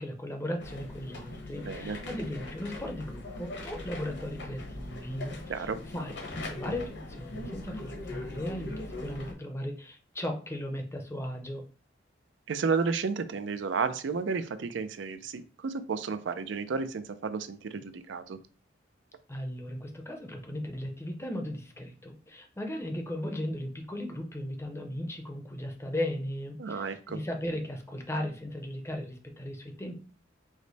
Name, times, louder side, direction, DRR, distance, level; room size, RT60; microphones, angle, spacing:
voice 1, 0.0-6.2 6.5-11.6 19.3-30.0, left 1 dB, 15° left, 3 dB, 0.6 m, -37 dB
sound 1, 0.6-9.3, left 2 dB, 60° left, 1.1 m, -41 dB
voice 2, 1.6-2.0 5.5-5.8 12.5-18.4 26.6-27.2, right 5 dB, 65° right, 11 dB, 0.4 m, -32 dB
4.9 x 2.1 x 4.0 m, 0.38 s
head